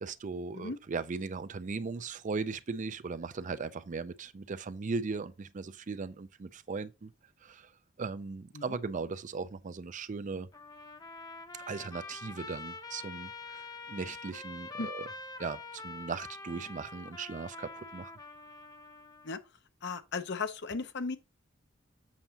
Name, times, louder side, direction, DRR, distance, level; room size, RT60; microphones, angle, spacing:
voice 1, 0.0-7.1 7.4-7.7 8.0-10.5 11.7-15.1 15.4-18.1, right 4 dB, 40° right, 0.4 m, -38 dB
Trumpet, 10.5-19.3, left 3 dB, 20° left, 0.7 m, -45 dB
voice 2, 19.8-21.2, left 4 dB, 60° left, 0.8 m, -36 dB
7.2 x 6.9 x 2.8 m
head